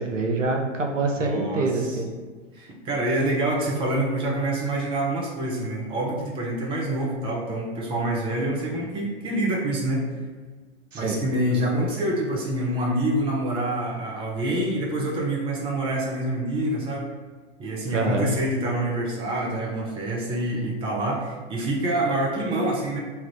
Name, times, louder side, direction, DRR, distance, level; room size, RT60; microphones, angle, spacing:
voice 1, 0.0-2.1 10.9-11.2 17.9-18.3, right 3 dB, 80° right, 2 dB, 0.7 m, -25 dB
voice 2, 1.2-1.9 2.5-10.0 10.9-17.1 17.6-23.0, right 1 dB, 15° right, -2 dB, 0.6 m, -26 dB
3.4 x 2.4 x 4.5 m, 1.4 s
figure-of-eight pair, 105°, 37 cm